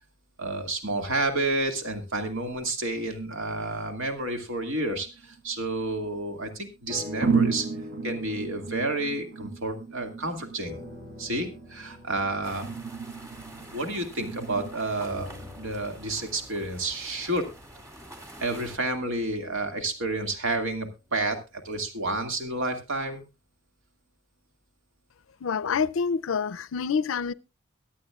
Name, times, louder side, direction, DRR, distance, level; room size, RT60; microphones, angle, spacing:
voice 1, 0.4-7.7 8.0-10.8 11.2-12.7 13.7-17.5 18.4-23.2, right 2 dB, 75° right, 2.1 m, -30 dB
sound 1, 4.9-6.1 6.7-6.8 7.2-14.7, right 5 dB, 55° right, 1.0 m, -33 dB
sound 2, 6.9-10.2 10.6-14.4 15.0-19.2 19.9-20.0, left 2 dB, 40° right, 4.0 m, -45 dB
sound 3, 12.4-18.8, right 1 dB, 15° right, 2.2 m, -47 dB
voice 2, 25.4-27.3, left 6 dB, 80° left, 0.5 m, -27 dB
22.5 x 8.5 x 2.4 m
head